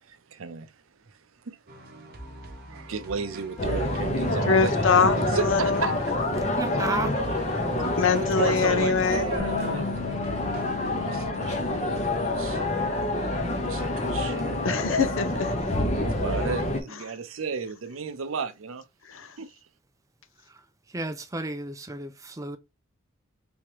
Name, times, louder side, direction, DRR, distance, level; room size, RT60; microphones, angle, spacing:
voice 1, 0.0-1.6 2.6-4.8 5.2-6.2 7.7-10.0 10.8-12.6 13.6-14.6 15.9-18.9 19.4-19.6, right 5 dB, 80° right, 0.6 m, -34 dB
sound 1, 1.7-11.3, right 1 dB, 50° right, 0.8 m, -45 dB
sound 2, 3.6-16.8, left 1 dB, 35° left, 0.9 m, -27 dB
voice 2, 4.5-5.8 8.0-9.4 14.6-15.5 19.1-19.3, left 5 dB, 75° left, 0.6 m, -23 dB
voice 3, 6.6-7.2 20.9-22.6, right 2 dB, 15° right, 0.4 m, -32 dB
Bass guitar, 9.4-15.6, left 6 dB, 10° left, 1.3 m, -41 dB
3.5 x 2.9 x 3.0 m
head